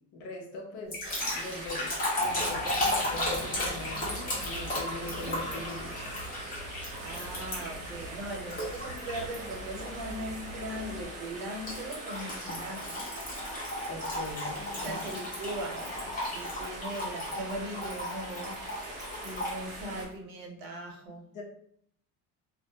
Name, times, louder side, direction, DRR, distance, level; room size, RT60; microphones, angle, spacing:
voice 1, 0.0-6.0 13.9-15.1 21.3-21.4, left 2 dB, 60° left, 1 dB, 0.7 m, -42 dB
sound 1, 0.9-7.9 8.5-9.4 9.8-10.1 11.7-19.6, left 1 dB, 25° left, 0.8 m, -35 dB
sound 2, 1.0-20.1, right 1 dB, 20° right, 0.6 m, -42 dB
sound 3, 2.2-11.1, right 1 dB, 60° right, 0.7 m, -45 dB
voice 2, 7.0-13.1 14.7-18.9 19.2-21.3, right 1 dB, 90° right, 1 dB, 0.8 m, -39 dB
2.2 x 2.1 x 2.7 m, 0.66 s
cardioid pair, 155°, 34 cm